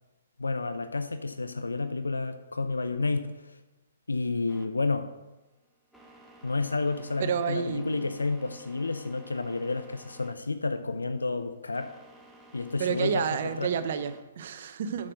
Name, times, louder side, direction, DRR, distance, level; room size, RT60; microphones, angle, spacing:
voice 1, 0.4-3.3 4.1-5.1 6.4-11.9 12.5-13.2 13.6-13.7, left 3 dB, 80° left, 9 dB, 0.6 m, -30 dB
sound 1, 4.5-14.2, right 1 dB, ahead, 1.2 m, -54 dB
voice 2, 7.2-8.1 12.8-15.1, right 7 dB, 50° right, 10 dB, 0.7 m, -30 dB
7.5 x 6.4 x 6.2 m, 1.1 s
figure-of-eight pair, 125°, 0 cm